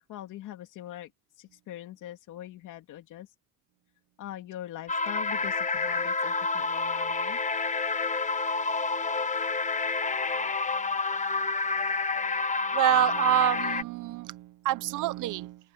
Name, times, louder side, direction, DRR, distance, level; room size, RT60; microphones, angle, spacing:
voice 1, 0.1-1.1 1.4-3.3 4.2-7.4, left 13 dB, 85° left, 2.9 m, -42 dB
sound 1, 4.9-13.8, left 4 dB, 25° left, 1.1 m, -29 dB
voice 2, 12.7-15.6, right 15 dB, 85° right, 0.8 m, -27 dB
open air
cardioid pair, 90°, 30 cm